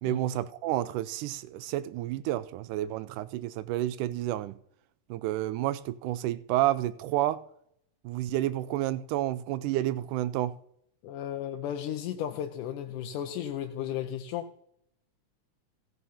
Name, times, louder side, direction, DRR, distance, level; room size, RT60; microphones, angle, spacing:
voice 1, 0.0-4.6 5.1-7.4 8.0-10.6, right 14 dB, 85° right, 2.1 m, -30 dB
voice 2, 11.0-14.5, left 10 dB, 90° left, 2.2 m, -34 dB
16.0 x 5.6 x 5.6 m
omnidirectional pair, 3.6 m